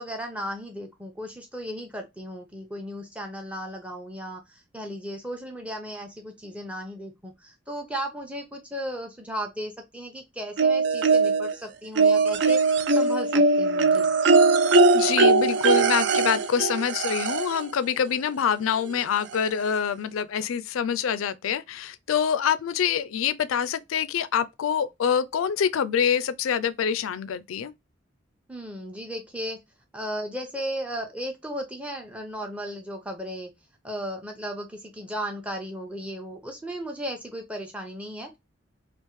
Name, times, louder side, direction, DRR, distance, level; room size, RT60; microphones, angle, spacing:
voice 1, 0.0-12.6 12.9-14.1 28.5-29.6 29.9-33.5 33.8-38.4, equal, 5° right, 0.7 m, -35 dB
sound 1, 10.6-11.5 12.0-17.6 18.9-19.0 19.3-19.4, right 3 dB, 60° right, 0.3 m, -20 dB
voice 2, 14.7-27.7, left 7 dB, 90° left, 0.4 m, -26 dB
3.5 x 2.4 x 3.0 m
head